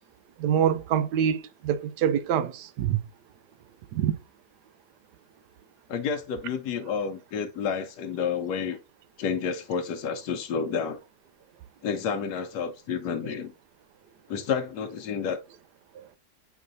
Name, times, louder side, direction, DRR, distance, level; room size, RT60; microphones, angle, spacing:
voice 1, 0.4-3.0 3.9-4.1, right 9 dB, 85° right, 1.2 m, -25 dB
voice 2, 5.9-8.8 9.2-11.0 11.8-13.5 14.3-15.4, left 6 dB, 85° left, 1.3 m, -30 dB
8.1 x 4.7 x 2.6 m
omnidirectional pair, 1.7 m